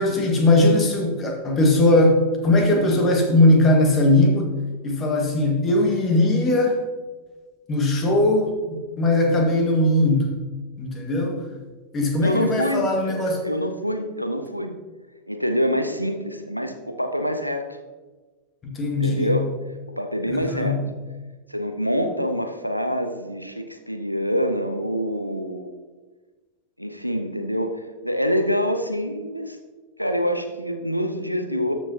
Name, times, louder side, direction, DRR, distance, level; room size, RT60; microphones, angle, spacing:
voice 1, 0.0-4.5 4.8-6.8 7.7-10.3 10.8-11.5 11.9-13.4 18.6-19.4 20.3-20.8, left 1 dB, 25° left, 2 dB, 1.8 m, -19 dB
voice 2, 12.2-14.8 15.3-17.8 18.9-19.5 20.0-20.8 21.5-25.7 26.8-29.6 30.0-31.7, equal, 90° right, 7 dB, 0.7 m, -26 dB
13.0 x 6.4 x 2.8 m, 1.3 s
figure-of-eight pair, 90°, 0 cm